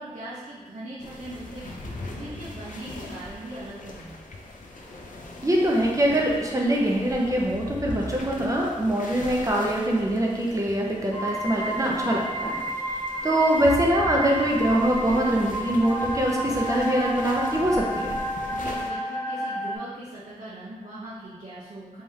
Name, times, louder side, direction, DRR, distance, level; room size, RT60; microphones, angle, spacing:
voice 1, 0.0-4.2 18.5-22.0, right 1 dB, 80° right, -9 dB, 0.7 m, -40 dB
sound 1, 1.0-18.9, left 2 dB, 85° left, 0.5 m, -39 dB
voice 2, 5.4-12.6 13.2-18.1, right 1 dB, 25° right, -2 dB, 0.7 m, -23 dB
sound 2, 11.1-19.8, equal, 25° left, 0.4 m, -31 dB
3.4 x 3.3 x 2.7 m, 1.3 s
wide cardioid pair, 95°, 13 cm